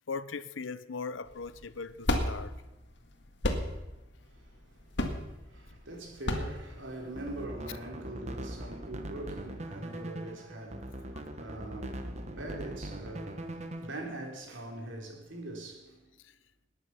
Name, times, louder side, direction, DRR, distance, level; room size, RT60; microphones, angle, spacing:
voice 1, 0.1-2.5 11.1-11.2 16.2-16.3, left 4 dB, 85° left, 0.7 m, -39 dB
sound 1, 1.3-7.4, left 1 dB, 65° left, 1.9 m, -33 dB
voice 2, 4.2-16.1, right 2 dB, 80° right, 3.4 m, -43 dB
sound 2, 7.0-14.1, right 1 dB, 35° right, 1.2 m, -41 dB
19.5 x 9.7 x 5.8 m
head